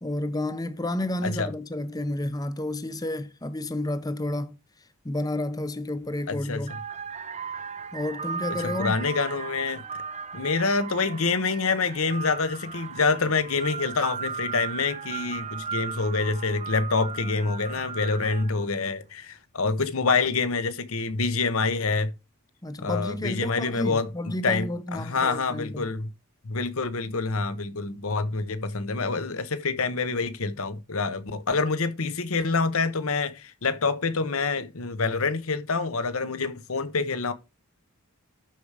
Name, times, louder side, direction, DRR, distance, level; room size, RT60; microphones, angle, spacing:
voice 1, 0.0-4.5 5.0-6.7 7.9-8.9 22.6-25.9, left 1 dB, 15° left, 0.8 m, -31 dB
sound 1, 6.0-6.2 6.6-18.7, right 6 dB, 30° right, 0.6 m, -36 dB
voice 2, 6.3-6.6 8.6-9.8 10.3-22.1 22.8-26.1 26.4-37.3, left 4 dB, 70° left, 1.1 m, -27 dB
12.5 x 5.0 x 4.8 m
head